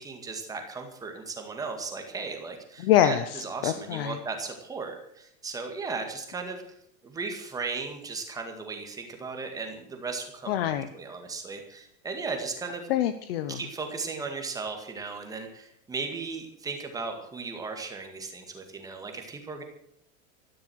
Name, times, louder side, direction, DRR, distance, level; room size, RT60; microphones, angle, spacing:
voice 1, 0.0-6.6 7.0-12.9 13.5-19.6, right 4 dB, 10° right, 4 dB, 1.9 m, -36 dB
voice 2, 2.8-4.2 10.5-10.9 12.9-13.6, left 12 dB, 45° left, 11 dB, 0.9 m, -25 dB
13.5 x 12.5 x 6.4 m, 0.73 s
supercardioid pair, 170°, 42 cm